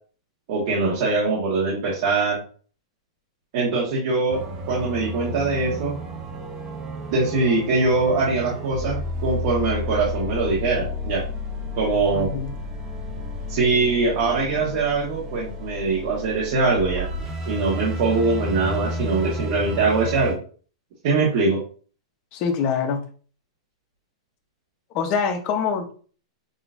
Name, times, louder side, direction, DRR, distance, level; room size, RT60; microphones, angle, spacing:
voice 1, 0.5-2.4 3.5-6.0 7.1-11.2 11.7-12.3 13.5-17.1 17.5-20.4 21.0-21.6, right 3 dB, 50° right, -4 dB, 1.6 m, -22 dB
sound 1, 4.3-20.3, left 1 dB, 30° right, 1.0 m, -32 dB
voice 2, 12.1-12.6 22.3-23.0 24.9-25.9, left 6 dB, 35° left, 3 dB, 0.9 m, -24 dB
6.6 x 3.0 x 2.6 m, 0.42 s
supercardioid pair, 150°, 3 cm